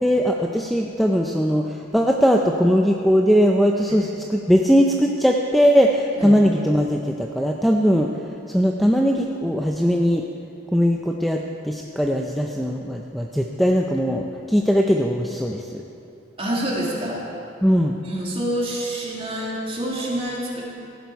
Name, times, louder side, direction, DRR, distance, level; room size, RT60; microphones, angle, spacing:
voice 1, 0.0-8.1 8.5-10.3 10.7-15.8 17.6-18.0, equal, ahead, 1 dB, 0.5 m, -20 dB
voice 2, 16.4-17.2 18.0-20.6, right 1 dB, 30° right, -4 dB, 2.5 m, -27 dB
16.0 x 11.5 x 4.7 m, 2.8 s
head